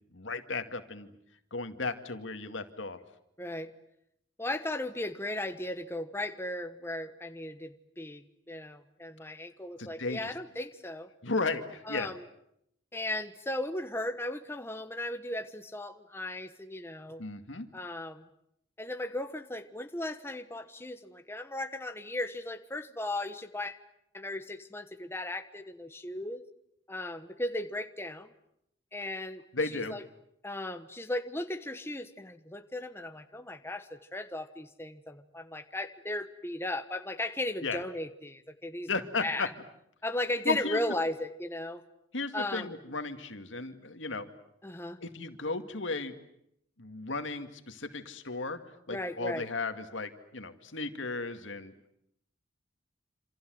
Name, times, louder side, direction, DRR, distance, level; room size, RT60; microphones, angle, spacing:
voice 1, 0.1-1.1 1.5-3.0 9.8-10.2 11.2-12.1 17.2-17.7 29.5-30.0 37.6-37.8 38.9-39.5 40.4-40.8 42.1-44.3 45.0-46.2 46.8-48.6 48.9-51.9, left 3 dB, 90° left, 8 dB, 2.3 m, -35 dB
voice 2, 3.4-3.7 4.4-11.1 11.9-12.2 12.9-17.2 17.7-18.3 18.8-23.8 24.1-26.4 26.9-28.3 28.9-29.4 29.7-30.0 30.4-38.9 39.2-39.5 40.0-41.8 42.3-42.7 44.6-45.0 48.9-49.5, left 1 dB, 15° left, 8 dB, 1.2 m, -36 dB
27.5 x 27.5 x 7.9 m, 0.77 s
head